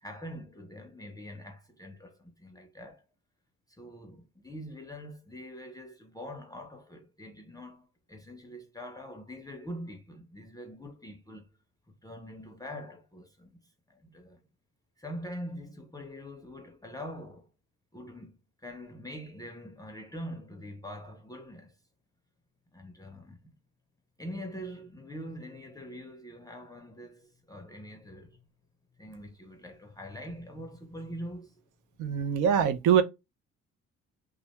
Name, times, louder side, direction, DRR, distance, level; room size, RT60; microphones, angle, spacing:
voice 1, 0.0-3.0 3.7-11.5 11.9-13.6 13.9-14.4 15.0-17.5 17.9-21.8 22.7-23.5 24.2-28.4 29.0-31.6, equal, 15° left, 0.4 m, -44 dB
voice 2, 32.0-33.0, right 8 dB, 90° right, 0.5 m, -23 dB
2.4 x 2.1 x 2.8 m
cardioid pair, 90°, 30 cm